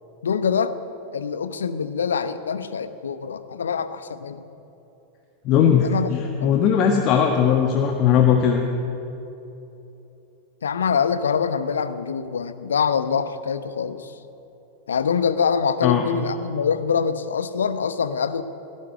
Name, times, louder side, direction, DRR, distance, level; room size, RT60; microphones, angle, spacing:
voice 1, 0.2-0.7 1.1-4.4 5.8-6.1 6.4-6.6 10.6-14.1 14.9-18.4, left 6 dB, 70° left, 12 dB, 1.1 m, -24 dB
voice 2, 5.4-8.6 15.8-16.1, left 8 dB, 40° left, 3 dB, 1.6 m, -19 dB
18.5 x 17.5 x 8.8 m, 3.0 s
figure-of-eight pair, 90°, 0 cm